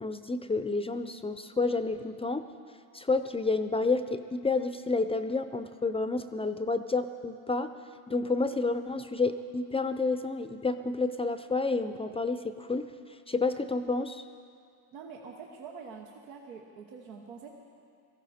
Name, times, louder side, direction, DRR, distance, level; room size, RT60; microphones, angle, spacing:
voice 1, 0.0-2.5 2.9-7.7 8.1-12.9 13.3-14.2, left 3 dB, 15° left, 10 dB, 0.5 m, -30 dB
voice 2, 14.9-17.5, right 5 dB, 90° right, 1 dB, 1.2 m, -45 dB
17.5 x 14.0 x 4.3 m, 2.3 s
supercardioid pair, 85°, 42 cm